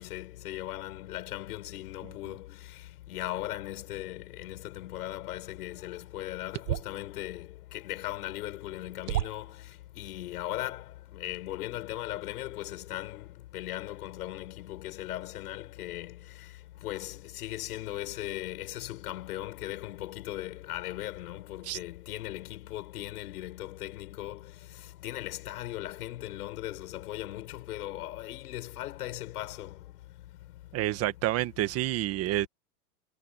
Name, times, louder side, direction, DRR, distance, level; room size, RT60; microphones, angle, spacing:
voice 1, 0.0-2.4 3.1-7.5 7.7-9.4 10.0-10.8 11.1-13.2 13.5-16.2 16.8-24.4 25.0-29.7, left 15 dB, 75° left, 6.8 m, -38 dB
sound 1, 6.5-7.0 8.4-8.5 9.1-9.6, right 14 dB, 90° right, 1.3 m, -32 dB
voice 2, 30.7-32.5, right 15 dB, 30° right, 1.6 m, -29 dB
supercardioid pair, 150°, 45 cm